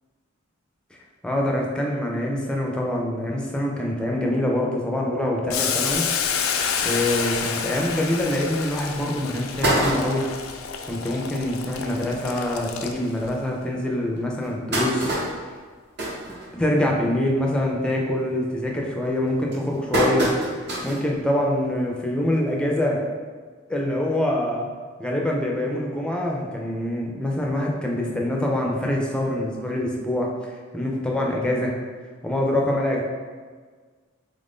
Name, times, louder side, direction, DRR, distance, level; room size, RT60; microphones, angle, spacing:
voice 1, 1.2-6.1 6.8-10.3 10.9-15.1 15.4-15.5 16.5-23.0 23.7-24.7 25.0-31.7 32.2-33.0, left 1 dB, 5° left, -1 dB, 0.4 m, -25 dB
Boiling, 5.5-13.3, left 6 dB, 80° left, 0.3 m, -29 dB
sound 1, 9.4-10.5 11.0-11.1 11.4-11.5 11.8-12.0 12.7-12.8 13.3-13.4 14.2-17.0 17.4-17.7 18.0-18.4 19.1-21.1 21.5-21.6 22.8-22.9, right 1 dB, 55° right, 0.9 m, -26 dB
3.6 x 2.5 x 3.6 m, 1.5 s
head